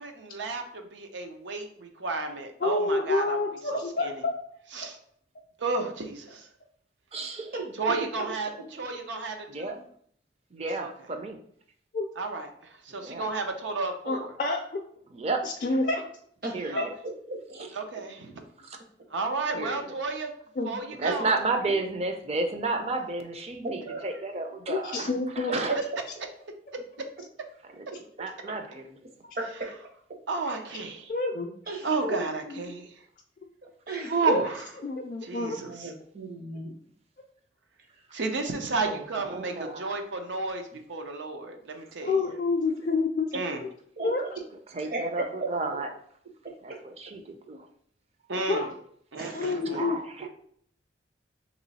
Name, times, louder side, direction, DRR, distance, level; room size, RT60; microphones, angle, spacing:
voice 1, 0.0-3.4 4.0-4.2 4.7-5.0 5.6-6.5 7.8-9.8 10.7-10.9 12.2-12.5 12.8-14.3 16.7-16.9 17.7-18.4 19.1-20.3 20.6-21.3 25.5-25.6 30.3-31.1 31.8-32.8 34.1-34.6 35.2-35.9 38.1-42.3 43.3-43.6 48.3-48.7 49.1-49.9, right 3 dB, 90° right, 5 dB, 0.6 m, -32 dB
voice 2, 2.6-4.4 4.8-4.9 11.9-12.1 14.1-14.8 15.4-16.1 16.7-16.8 20.6-20.7 24.7-25.5 31.1-31.5 32.1-32.2 34.3-34.4 34.8-35.6 42.0-43.3 43.6-43.7 44.0-44.2 48.5-48.7 49.3-50.0, left 3 dB, 45° left, -1 dB, 0.4 m, -28 dB
voice 3, 7.1-7.5 9.5-9.7 10.5-11.4 12.9-13.3 15.1-15.5 16.5-16.9 18.6-18.8 19.5-19.9 20.9-25.7 27.6-27.9 28.2-28.8 38.9-39.9 44.7-45.9 46.6-47.6 49.7-50.3, right 3 dB, 35° right, 5 dB, 0.4 m, -32 dB
voice 4, 16.4-16.8 17.3-17.7 21.0-21.1 23.6-24.2 25.6-25.8 29.3-29.7 30.5-30.6 31.7-32.7 33.9-34.3 35.4-36.7 43.3-43.4 44.0-44.3 44.9-45.6 46.4-46.8 49.1-49.7, right 3 dB, 50° right, 2 dB, 0.8 m, -35 dB
3.0 x 3.0 x 4.0 m, 0.62 s
head